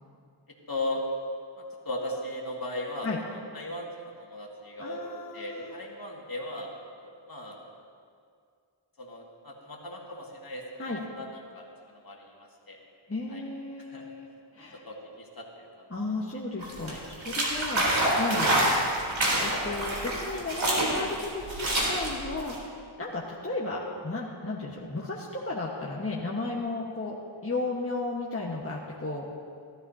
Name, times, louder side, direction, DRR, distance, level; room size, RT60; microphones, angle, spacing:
voice 1, 0.7-1.0 1.6-5.0 5.3-6.7 7.0-7.6 9.0-11.3 11.5-12.3 12.7-12.8 13.3-13.4 13.8-14.0 14.9-15.9 16.9-17.0 19.5-19.6, left 1 dB, 45° left, -2 dB, 2.2 m, -37 dB
voice 2, 4.8-5.8 10.8-11.0 13.1-14.8 15.9-17.8 18.2-18.7 19.4-22.7 23.0-27.2 27.4-29.4, left 2 dB, 25° left, -4 dB, 1.4 m, -34 dB
sound 1, 16.6-22.6, right 1 dB, 65° right, 3.6 m, -27 dB
17.5 x 12.5 x 2.8 m, 2.3 s
cardioid pair, 55°, 49 cm